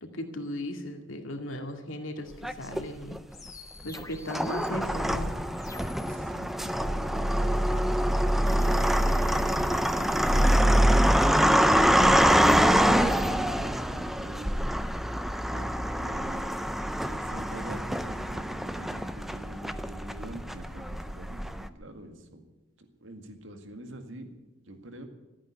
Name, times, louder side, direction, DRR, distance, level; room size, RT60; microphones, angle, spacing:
voice 1, 0.0-3.2 3.8-5.3, left 1 dB, 75° left, 4 dB, 2.1 m, -37 dB
sound 1, 2.4-3.2 3.9-21.7, equal, ahead, 0.5 m, -25 dB
sound 2, 3.3-6.2 8.5-11.3 12.1-13.3, left 3 dB, 15° left, 1.3 m, -49 dB
voice 2, 6.1-9.7 10.4-14.6 15.5-16.5 17.0-22.4 22.8-24.3 24.6-25.1, right 1 dB, 70° right, 6 dB, 1.9 m, -44 dB
14.0 x 9.0 x 9.7 m, 1.1 s
head